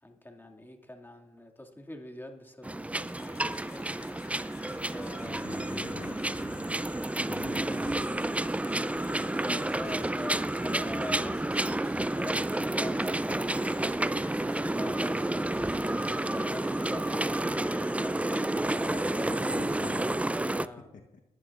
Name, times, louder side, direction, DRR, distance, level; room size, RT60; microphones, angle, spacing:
voice 1, 0.0-3.9 4.9-6.0 7.6-7.9 9.4-19.4 20.4-20.9, left 1 dB, 15° left, 1 dB, 2.3 m, -44 dB
sound 1, 2.6-20.7, right 1 dB, 10° right, 0.4 m, -30 dB
sound 2, 3.0-19.9, left 8 dB, 90° left, 1.1 m, -53 dB
voice 2, 5.2-6.9 7.2-8.0 19.3-20.3 20.8-21.2, left 5 dB, 60° left, 2 dB, 1.1 m, -46 dB
22.0 x 10.5 x 2.5 m, 0.96 s
supercardioid pair, 50°, 16 cm